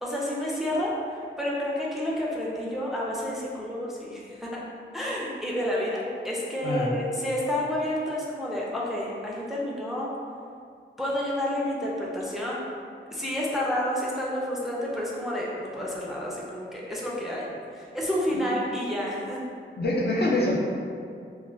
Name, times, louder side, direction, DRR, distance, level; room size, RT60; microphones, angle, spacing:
voice 1, 0.0-4.6 4.9-10.1 11.0-12.6 13.1-19.4, left 1 dB, ahead, -5 dB, 0.4 m, -30 dB
voice 2, 19.8-20.6, left 1 dB, 55° left, -4 dB, 0.5 m, -25 dB
2.4 x 2.1 x 3.2 m, 2.3 s
wide cardioid pair, 80°, 21 cm